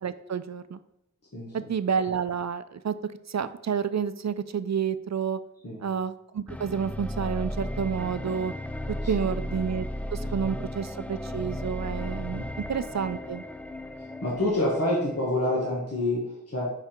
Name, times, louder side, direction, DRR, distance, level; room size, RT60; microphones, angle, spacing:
voice 1, 0.0-0.8 1.5-3.0 3.3-5.4 5.8-8.5 9.1-13.4, right 7 dB, 60° right, 13 dB, 0.4 m, -30 dB
sound 1, 6.5-15.5, left 1 dB, 5° left, 0.3 m, -35 dB
voice 2, 14.2-16.7, left 1 dB, 50° left, -5 dB, 1.5 m, -27 dB
5.7 x 4.9 x 4.4 m, 0.81 s
wide cardioid pair, 55°, 31 cm